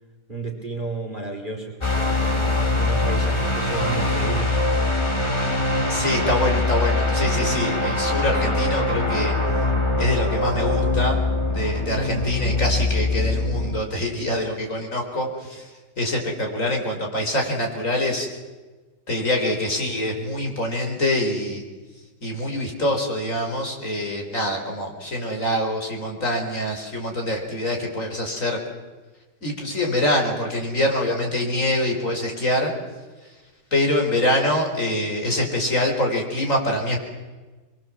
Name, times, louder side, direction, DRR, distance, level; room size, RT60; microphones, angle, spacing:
voice 1, 0.3-4.5, right 3 dB, 25° right, 2 dB, 3.0 m, -32 dB
sound 1, 1.8-13.8, left 2 dB, 15° left, 2.0 m, -23 dB
voice 2, 5.9-9.3 10.0-11.2 11.5-15.7 16.0-18.3 19.1-21.6 22.2-28.6 29.4-32.7 33.7-37.0, left 1 dB, 45° left, 2 dB, 4.7 m, -25 dB
24.5 x 22.5 x 7.4 m, 1.3 s
omnidirectional pair, 1.9 m